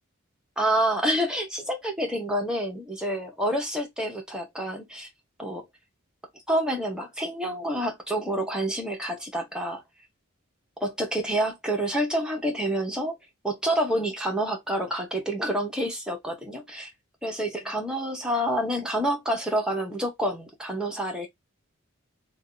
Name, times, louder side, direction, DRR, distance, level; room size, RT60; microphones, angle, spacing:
voice 1, 0.6-5.1 5.4-5.7 6.5-9.8 10.8-13.2 13.4-16.9 17.2-21.3, right 1 dB, 5° right, 0.8 m, -28 dB
2.6 x 2.3 x 3.6 m
head